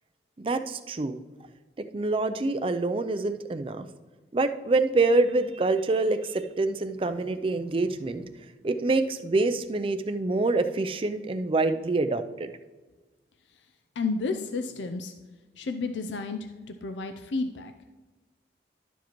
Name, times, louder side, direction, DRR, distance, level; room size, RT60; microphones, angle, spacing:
voice 1, 0.4-1.2 1.9-3.9 4.3-8.2 8.6-12.5, right 3 dB, 30° right, 9 dB, 0.4 m, -26 dB
voice 2, 14.0-15.1 15.6-16.4 16.8-17.7, left 4 dB, 90° left, 7 dB, 0.5 m, -31 dB
12.0 x 7.2 x 3.0 m, 1.2 s
head